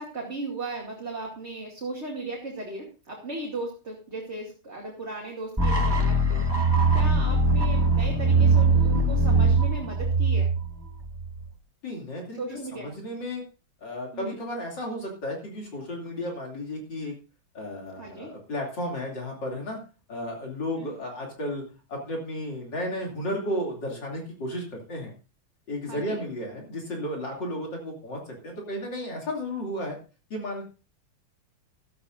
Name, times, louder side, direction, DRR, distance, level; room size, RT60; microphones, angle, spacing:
voice 1, 0.0-10.5 12.4-12.9 14.1-14.4 18.0-18.3 20.8-21.0 25.9-26.2, right 2 dB, 30° right, -2 dB, 2.7 m, -36 dB
sound 1, 5.6-11.5, right 2 dB, 15° right, 1.3 m, -22 dB
voice 2, 11.8-13.4 13.8-17.1 17.6-19.8 20.1-21.6 21.9-25.1 25.7-30.0 30.3-30.6, left 1 dB, 55° left, -1 dB, 3.5 m, -33 dB
15.5 x 13.0 x 2.6 m, 0.34 s
omnidirectional pair, 2.3 m